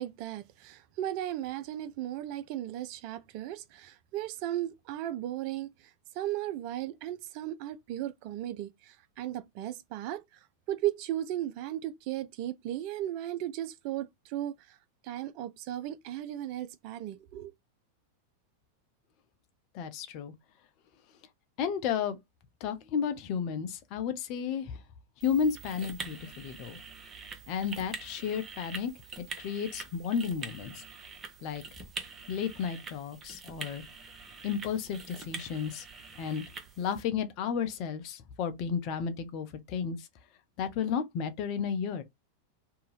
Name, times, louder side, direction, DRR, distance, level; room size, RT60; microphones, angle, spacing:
voice 1, 0.0-5.7 6.2-10.2 10.7-14.8 15.0-17.5, right 13 dB, 45° right, 0.3 m, -36 dB
voice 2, 19.7-20.3 21.6-22.2 22.6-24.8 25.2-26.8 27.5-28.9 29.4-30.8 31.4-31.6 32.3-33.8 34.4-35.8 36.2-36.4 36.8-40.1 40.6-42.0, left 7 dB, 40° left, 0.7 m, -32 dB
sound 1, 25.2-37.0, right 4 dB, 20° right, 0.7 m, -45 dB
2.6 x 2.2 x 3.2 m
figure-of-eight pair, 90°, 0 cm